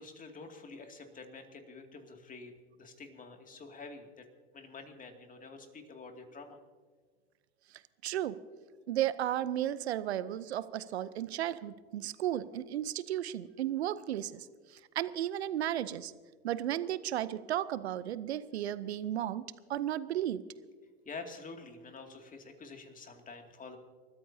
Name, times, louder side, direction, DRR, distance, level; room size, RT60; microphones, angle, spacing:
voice 1, 0.0-4.3 4.5-6.6 21.0-23.8, left 4 dB, 25° left, 4 dB, 2.4 m, -48 dB
voice 2, 8.0-8.4 8.9-14.5 14.7-16.1 16.4-19.4 19.7-20.4, right 12 dB, 80° right, 16 dB, 0.7 m, -34 dB
28.5 x 14.0 x 2.8 m, 1.5 s
hypercardioid pair, 90°, 32 cm